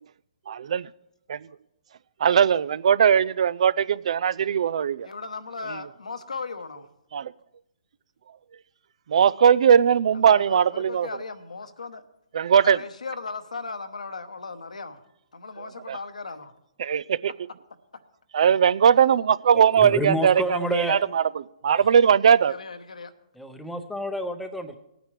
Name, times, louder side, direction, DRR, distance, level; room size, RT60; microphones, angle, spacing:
voice 1, 0.5-0.9 1.3-1.4 2.2-5.1 7.1-7.3 9.1-11.1 12.3-12.8 15.9-16.0 16.8-17.3 18.3-21.2 21.6-22.5, right 8 dB, 60° right, 0.4 m, -19 dB
voice 2, 5.0-6.9 10.1-12.0 12.6-15.0 15.3-16.5 22.4-23.1, left 4 dB, 85° left, 1.1 m, -37 dB
voice 3, 19.5-21.0 23.4-24.8, equal, 5° left, 0.7 m, -29 dB
19.0 x 9.1 x 3.3 m
hypercardioid pair, 140°, 4 cm